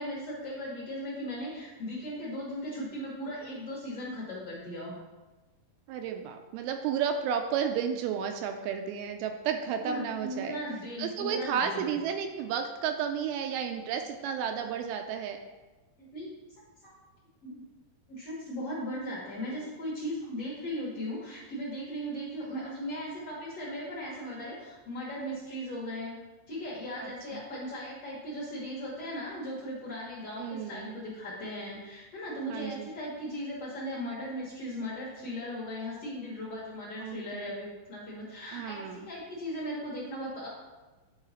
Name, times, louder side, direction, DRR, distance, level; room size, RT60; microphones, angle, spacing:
voice 1, 0.0-4.9 9.8-11.9 16.0-16.3 16.8-16.9 17.4-17.6 18.1-26.2 26.5-40.5, equal, 60° left, -6 dB, 1.7 m, -37 dB
voice 2, 5.9-10.6 11.0-15.4 27.0-27.4 30.4-31.0 32.5-32.9 37.0-37.5 38.5-39.1, right 7 dB, 80° right, 5 dB, 2.3 m, -32 dB
8.8 x 4.7 x 4.2 m, 1.2 s
omnidirectional pair, 4.6 m